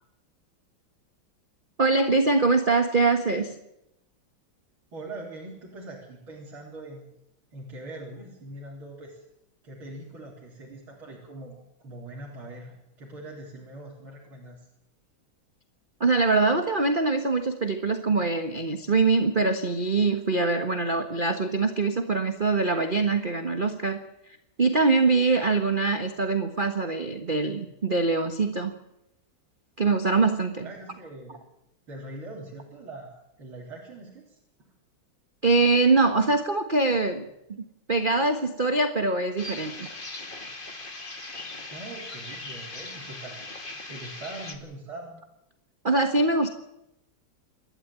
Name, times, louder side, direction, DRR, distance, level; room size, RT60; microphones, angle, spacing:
voice 1, 1.8-3.6 16.0-24.0 24.6-28.7 29.8-30.6 35.4-39.9 45.8-46.5, right 3 dB, 25° right, 5 dB, 1.4 m, -23 dB
voice 2, 4.9-7.1 7.5-9.2 9.6-14.7 30.6-31.4 31.9-34.7 41.7-43.5 43.9-45.2, right 2 dB, 80° right, -4 dB, 4.8 m, -42 dB
sound 1, 39.4-44.6, left 2 dB, 25° left, 2.4 m, -39 dB
28.0 x 13.0 x 8.9 m, 0.86 s
omnidirectional pair, 2.2 m